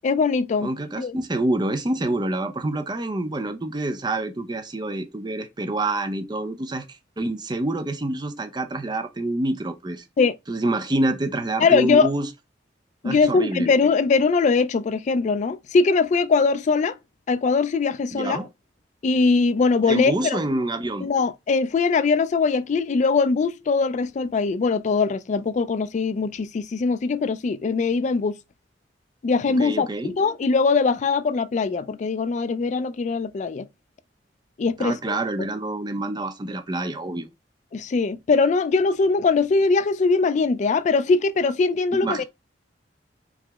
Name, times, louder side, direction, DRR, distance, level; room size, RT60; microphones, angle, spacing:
voice 1, 0.0-0.7 1.0-1.2 10.2-10.4 11.6-12.1 13.0-17.0 17.3-18.4 19.0-20.4 21.0-28.4 29.2-33.7 34.6-35.2 37.7-42.2, left 4 dB, 40° left, 0.3 m, -21 dB
voice 2, 0.6-6.8 7.2-10.0 10.5-12.3 13.0-13.7 18.1-18.5 19.9-21.1 29.5-30.1 34.8-37.3 41.9-42.2, right 2 dB, 25° right, 0.5 m, -27 dB
4.7 x 2.0 x 3.4 m
head